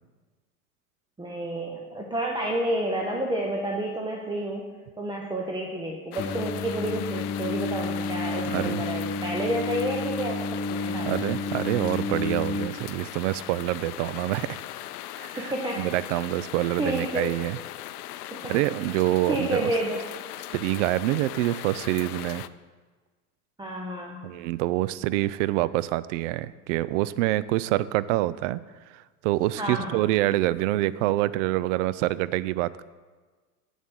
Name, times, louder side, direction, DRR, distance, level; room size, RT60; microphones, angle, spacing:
voice 1, 1.2-4.7 5.0-11.3 15.4-15.9 16.8-17.4 18.3-18.5 18.8-18.9 19.3-20.1 23.6-24.4 29.6-30.0, right 1 dB, 10° right, 0 dB, 0.9 m, -30 dB
sound 1, 6.1-22.5, left 14 dB, 75° left, 0.6 m, -39 dB
Singing, 6.2-12.7, left 3 dB, 15° left, 0.9 m, -31 dB
voice 2, 8.5-8.8 11.0-14.6 15.2-17.6 18.5-19.7 20.5-22.4 24.2-28.6 28.9-32.8, right 16 dB, 55° right, 18 dB, 0.5 m, -26 dB
7.4 x 7.3 x 6.2 m, 1.4 s
hypercardioid pair, 105°, 45 cm